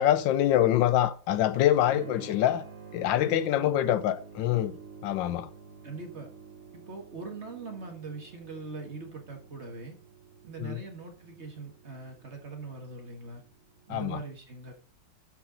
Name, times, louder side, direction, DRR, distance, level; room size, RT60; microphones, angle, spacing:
voice 1, 0.0-2.6 2.9-4.8 5.0-5.5 10.6-10.8 13.9-14.2, left 12 dB, 85° left, 1.3 m, -25 dB
Keyboard (musical), 1.8-14.2, right 5 dB, 85° right, 2.4 m, -50 dB
voice 2, 1.9-2.3 3.2-3.9 5.8-6.3 6.7-10.0 10.4-13.4 13.9-14.7, right 4 dB, 40° right, 1.7 m, -41 dB
12.0 x 4.7 x 3.9 m
omnidirectional pair, 2.0 m